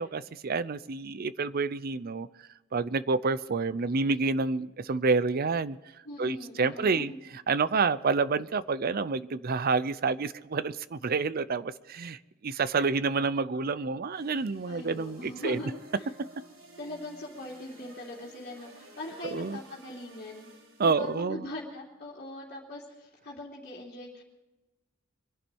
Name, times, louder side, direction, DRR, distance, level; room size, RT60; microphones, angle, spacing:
voice 1, 0.0-2.3 2.7-5.8 6.2-7.1 7.5-15.6 19.2-19.6 20.8-21.4, right 4 dB, 50° right, 16 dB, 0.5 m, -28 dB
voice 2, 6.0-7.2 14.7-15.8 16.8-20.5 20.8-24.2, left 1 dB, 55° left, -4 dB, 3.0 m, -41 dB
sound 1, 14.1-21.2, right 1 dB, 75° right, 4.1 m, -53 dB
24.5 x 11.5 x 4.6 m, 1.0 s
head